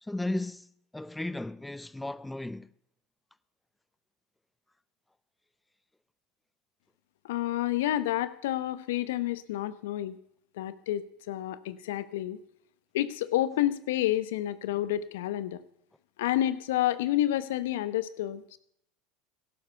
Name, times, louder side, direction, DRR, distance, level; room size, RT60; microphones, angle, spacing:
voice 1, 0.0-0.7 0.9-2.7, left 2 dB, 10° left, 0.6 m, -35 dB
voice 2, 7.2-10.2 10.6-12.4 12.9-15.6 16.2-18.6, left 13 dB, 75° left, 0.9 m, -29 dB
17.0 x 12.0 x 6.8 m
hypercardioid pair, 80°, 0 cm